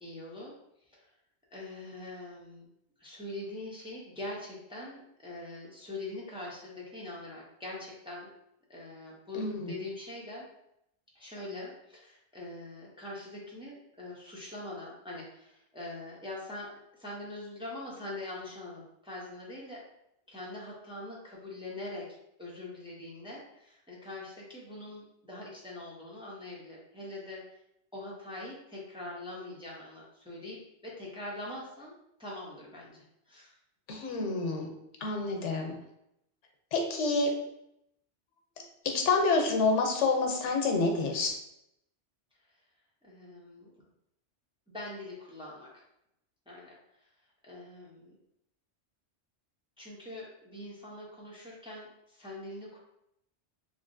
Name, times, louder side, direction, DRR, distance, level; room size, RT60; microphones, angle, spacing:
voice 1, 0.0-0.5 0.9-1.1 1.5-2.7 3.0-8.3 8.7-10.5 11.1-19.8 20.3-27.4 27.9-31.9 32.2-33.5 43.0-43.7 44.7-45.8 46.5-46.8 47.4-48.1 49.8-52.8, left 2 dB, 5° right, -5 dB, 0.4 m, -43 dB
voice 2, 9.3-9.7 33.9-35.8 36.7-37.3 38.6-41.3, left 3 dB, 90° left, 3 dB, 1.0 m, -28 dB
3.1 x 2.4 x 2.5 m, 0.79 s
omnidirectional pair, 1.2 m